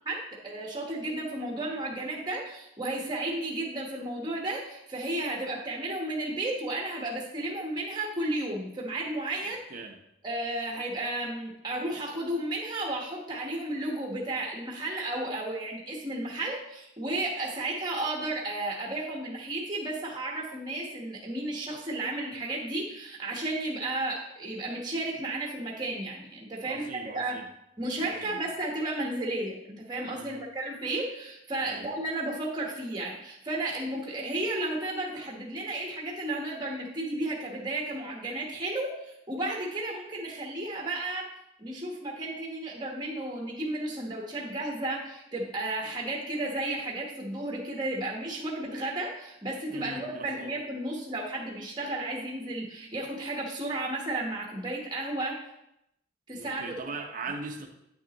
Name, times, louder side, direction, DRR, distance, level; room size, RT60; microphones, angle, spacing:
voice 1, 0.0-9.6 10.2-27.4 27.8-41.3 41.6-55.4 56.3-56.6, right 2 dB, 20° right, -2 dB, 1.1 m, -33 dB
voice 2, 26.6-27.5 28.0-28.4 30.1-30.4 31.6-31.9 49.7-50.5 56.3-57.7, right 3 dB, 40° right, 3 dB, 0.8 m, -40 dB
9.1 x 6.1 x 3.0 m, 0.82 s
head